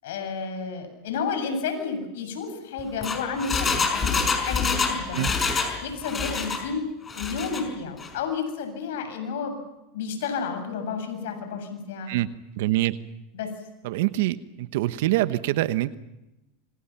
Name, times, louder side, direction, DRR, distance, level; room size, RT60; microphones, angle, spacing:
voice 1, 0.0-5.3 5.8-6.9 7.1-9.6 9.9-12.1 13.3-13.5, left 5 dB, 80° left, 7 dB, 7.2 m, -31 dB
Engine, 2.8-5.8 6.0-6.6 7.1-7.6 8.0-8.1, left 5 dB, 20° left, 5.4 m, -26 dB
voice 2, 12.5-13.0 13.8-15.9, right 16 dB, 75° right, 13 dB, 1.1 m, -25 dB
28.0 x 26.0 x 5.9 m, 0.95 s
supercardioid pair, 115°, 0 cm